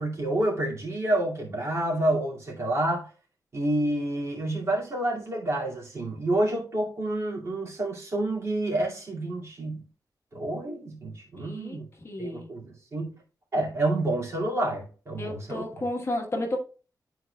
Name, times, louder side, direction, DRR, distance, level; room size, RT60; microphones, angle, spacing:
voice 1, 0.0-3.1 3.5-9.8 10.3-11.8 12.2-13.1 13.5-15.6, right 1 dB, 40° right, 2.2 m, -28 dB
voice 2, 11.4-11.8 12.0-12.5 15.2-16.6, left 1 dB, 35° left, 1.2 m, -32 dB
11.5 x 4.5 x 2.3 m
wide cardioid pair, 175°, 7 cm